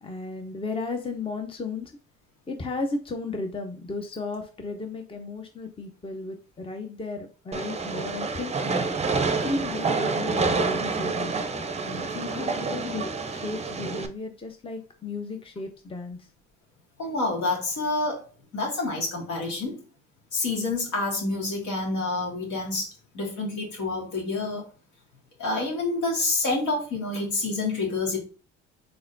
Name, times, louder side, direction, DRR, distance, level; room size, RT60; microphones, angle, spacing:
voice 1, 0.0-1.9 2.5-8.9 9.4-11.3 11.8-16.2, left 3 dB, 20° left, 5 dB, 0.7 m, -34 dB
Train, 7.5-14.1, right 4 dB, 20° right, 0.6 m, -28 dB
voice 2, 17.0-18.2 18.5-19.8 20.3-24.7 25.4-28.2, left 2 dB, 70° left, -1 dB, 2.2 m, -28 dB
3.9 x 3.8 x 2.7 m, 0.35 s
supercardioid pair, 70°, 30 cm